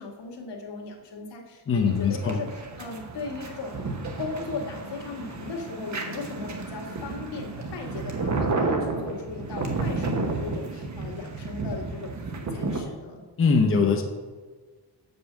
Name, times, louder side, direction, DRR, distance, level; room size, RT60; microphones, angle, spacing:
voice 1, 0.0-2.5 2.8-3.8 4.2-12.2 12.5-13.2, left 4 dB, 75° left, 1 dB, 1.6 m, -37 dB
voice 2, 1.7-2.4 13.4-14.0, left 5 dB, 30° left, 3 dB, 0.7 m, -22 dB
sound 1, 1.8-12.8, right 3 dB, 40° right, 1.1 m, -32 dB
6.6 x 5.3 x 7.2 m, 1.4 s
wide cardioid pair, 165°, 42 cm